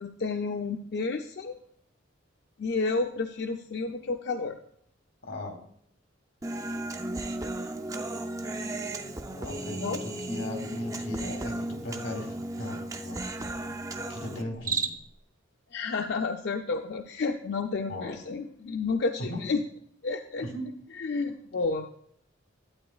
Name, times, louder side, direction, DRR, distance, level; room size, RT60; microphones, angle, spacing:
voice 1, 0.0-1.6 2.6-4.6 9.8-10.0 15.7-19.6 20.0-20.5 20.9-21.9, left 4 dB, 55° left, 5 dB, 0.4 m, -31 dB
voice 2, 5.2-5.6 9.3-13.2 14.1-14.9 17.9-18.1 19.3-19.4 20.4-20.6, left 1 dB, 90° left, 3 dB, 2.2 m, -38 dB
Human voice, 6.4-14.4, right 1 dB, 15° right, 0.4 m, -35 dB
Cricket, 14.5-15.2, right 5 dB, 40° right, 0.7 m, -31 dB
12.0 x 8.7 x 2.3 m, 0.67 s
head